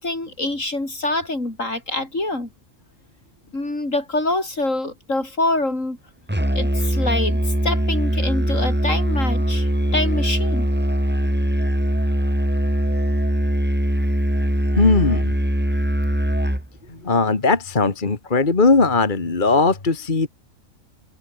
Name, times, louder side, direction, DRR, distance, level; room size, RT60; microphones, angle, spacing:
voice 1, 0.0-2.5 3.5-6.0 6.6-10.7, left 2 dB, 75° left, 6.1 m, -25 dB
Musical instrument, 6.3-16.7, equal, 10° right, 3.4 m, -21 dB
voice 2, 14.8-15.3 17.0-20.3, left 3 dB, 40° left, 2.0 m, -18 dB
open air
omnidirectional pair, 1.3 m